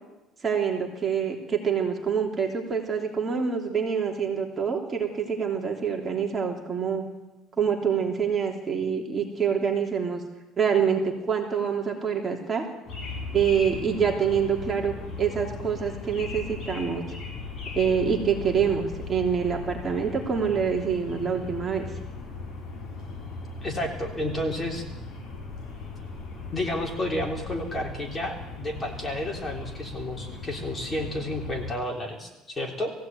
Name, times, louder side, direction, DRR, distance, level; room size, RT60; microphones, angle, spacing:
voice 1, 0.4-7.0 7.6-10.2 10.6-12.6 13.3-17.0 17.7-21.9, right 7 dB, 25° right, 1 dB, 3.2 m, -26 dB
sound 1, 12.9-31.7, left 4 dB, 40° left, 7.1 m, -38 dB
voice 2, 23.6-24.8 26.5-32.9, left 1 dB, 20° left, 2 dB, 3.6 m, -31 dB
20.0 x 16.0 x 9.4 m, 1.0 s
cardioid pair, 140°, 0 cm